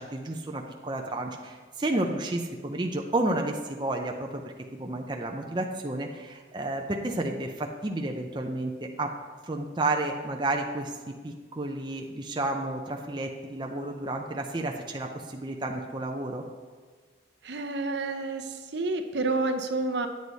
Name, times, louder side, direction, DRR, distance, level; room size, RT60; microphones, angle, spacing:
voice 1, 0.0-4.4 4.7-9.1 9.4-16.4, right 2 dB, 25° right, 2 dB, 0.6 m, -31 dB
voice 2, 17.4-20.1, right 3 dB, 65° right, 6 dB, 0.7 m, -29 dB
9.4 x 8.0 x 4.1 m, 1.5 s
head